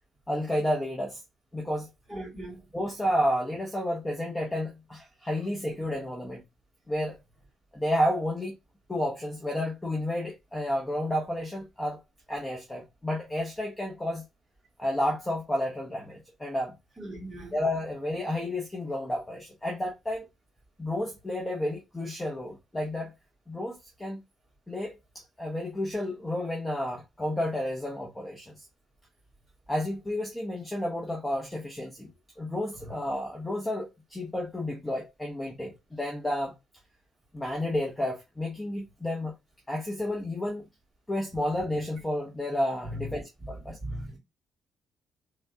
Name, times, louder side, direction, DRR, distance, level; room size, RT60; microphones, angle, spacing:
voice 1, 0.3-1.2 1.5-1.9 2.7-6.4 6.9-7.2 7.7-8.5 8.9-12.0 12.3-14.2 14.8-16.7 17.5-20.3 20.8-23.1 23.5-24.2 24.7-28.6 29.7-32.1 32.4-36.5 37.3-39.3 39.7-40.7 41.1-43.8, left 1 dB, 10° left, 0.8 m, -31 dB
voice 2, 2.1-2.6 17.0-17.6 42.8-43.5 43.8-44.2, equal, 10° right, 2.7 m, -38 dB
3.5 x 3.3 x 2.7 m
cardioid pair, 140°, 0 cm